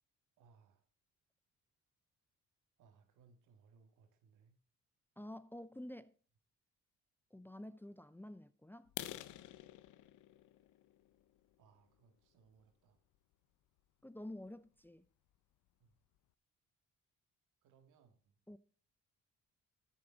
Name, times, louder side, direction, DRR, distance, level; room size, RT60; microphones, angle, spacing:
voice 1, 0.4-0.8 2.8-4.6 11.6-13.0 15.8-16.0 17.6-18.4, right 5 dB, 85° right, 2.0 m, -68 dB
voice 2, 5.2-6.1 7.3-8.9 14.0-15.1 18.5-18.6, left 1 dB, 5° left, 0.5 m, -49 dB
sound 1, 8.8-12.6 13.1-13.3 13.8-13.9 14.3-14.5 14.8-14.9 15.3-15.4 15.7-16.2, left 13 dB, 75° left, 0.7 m, -50 dB
13.0 x 7.0 x 3.9 m
cardioid pair, 90°, 30 cm